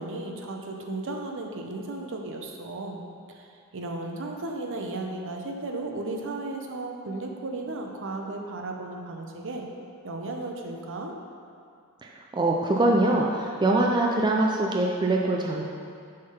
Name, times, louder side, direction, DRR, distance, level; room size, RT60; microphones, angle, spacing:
voice 1, 0.0-3.0 3.3-3.4 3.7-9.7 10.0-11.1, right 2 dB, 60° right, 2 dB, 0.7 m, -35 dB
voice 2, 12.0-15.6, right 2 dB, 20° right, -1 dB, 0.4 m, -23 dB
6.5 x 3.8 x 5.6 m, 2.4 s
head